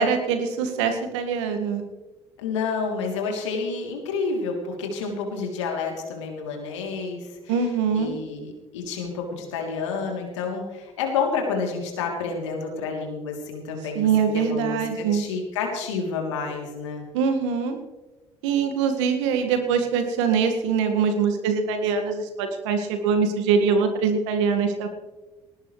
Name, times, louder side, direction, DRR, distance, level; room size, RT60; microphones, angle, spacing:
voice 1, 0.0-1.8 7.5-8.2 13.9-15.2 17.1-17.8 18.4-24.9, right 6 dB, 75° right, 5 dB, 2.0 m, -23 dB
voice 2, 2.4-7.5 7.9-14.1 14.3-17.0, left 4 dB, 85° left, 1 dB, 3.3 m, -29 dB
19.5 x 18.5 x 3.3 m, 1.1 s
hypercardioid pair, 55°, 15 cm